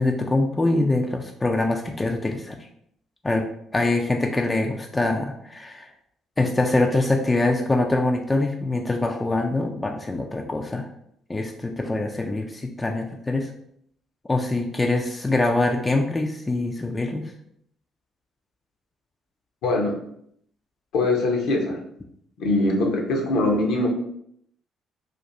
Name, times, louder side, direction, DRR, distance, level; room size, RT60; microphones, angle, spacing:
voice 1, 0.0-2.6 3.2-3.5 3.7-5.9 6.4-10.9 11.3-13.5 14.3-17.3, left 2 dB, 20° left, 2 dB, 0.4 m, -24 dB
voice 2, 19.6-20.0 20.9-21.8 22.4-23.9, left 2 dB, 65° left, 0 dB, 0.8 m, -22 dB
2.5 x 2.5 x 4.1 m, 0.70 s
figure-of-eight pair, 45°, 0 cm